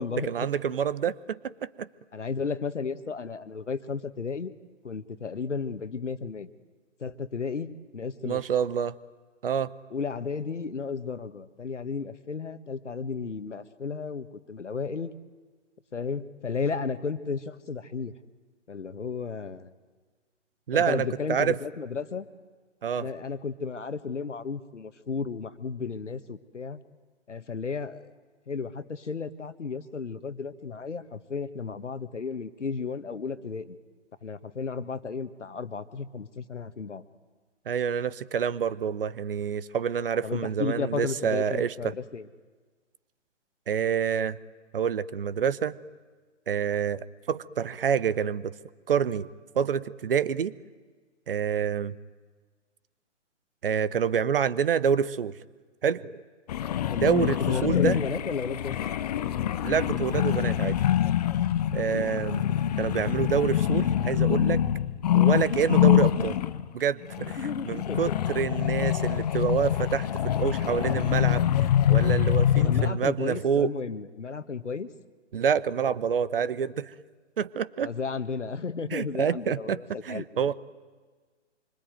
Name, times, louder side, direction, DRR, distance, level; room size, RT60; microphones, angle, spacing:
voice 1, 0.3-1.9 8.3-8.9 9.4-9.7 20.7-21.6 22.8-23.1 37.7-41.9 43.7-44.4 44.7-45.8 46.5-48.6 48.9-49.3 49.5-50.5 51.3-51.9 53.6-55.4 55.8-56.2 57.0-58.0 59.6-60.8 61.7-64.6 65.1-66.4 66.7-67.4 67.6-71.4 71.9-73.7 75.3-76.9 77.4-77.9 78.9-80.5, right 7 dB, 50° right, 18 dB, 1.0 m, -27 dB
voice 2, 2.1-4.5 4.8-6.5 7.0-8.4 9.9-15.1 15.9-18.1 18.7-19.7 20.7-22.3 22.9-26.8 27.3-28.1 28.5-33.8 34.2-37.0 40.2-42.3 56.8-58.7 61.9-62.1 65.1-65.3 67.4-68.4 72.6-74.9 77.8-80.5, left 5 dB, 70° left, 12 dB, 1.7 m, -33 dB
sound 1, 56.5-66.7 67.1-72.9, left 11 dB, 35° left, 1.0 m, -25 dB
26.0 x 24.5 x 9.3 m, 1.4 s
figure-of-eight pair, 130°, 37 cm